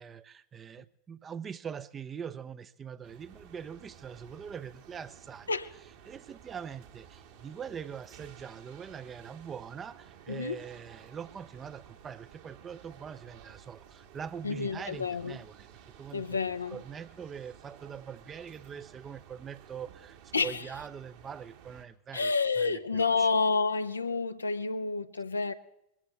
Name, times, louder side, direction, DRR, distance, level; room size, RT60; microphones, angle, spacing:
voice 1, 0.0-5.5 6.0-15.7 16.0-16.4 16.7-20.2 20.4-23.3, right 7 dB, 25° right, 0.6 m, -43 dB
sound 1, 3.0-21.9, right 9 dB, 55° right, 1.9 m, -54 dB
voice 2, 10.3-10.6 14.4-15.4 16.1-16.8 20.3-20.5 22.1-25.5, left 4 dB, 80° left, 0.6 m, -29 dB
21.0 x 14.5 x 3.3 m
figure-of-eight pair, 85°, 0 cm